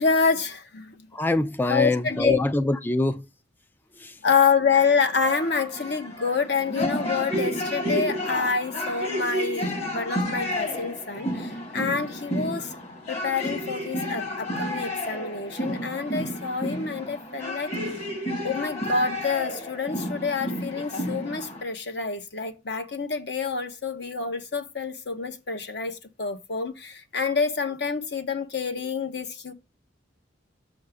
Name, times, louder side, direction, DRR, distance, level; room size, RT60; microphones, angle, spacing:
voice 1, 0.0-1.1 1.7-2.4 4.2-12.8 13.1-17.8 18.4-29.5, left 5 dB, 60° left, 1.2 m, -27 dB
voice 2, 1.1-3.2 4.0-4.1, left 2 dB, 10° left, 0.3 m, -24 dB
sound 1, 4.7-21.6, equal, 35° left, 2.0 m, -31 dB
6.8 x 6.5 x 3.6 m
head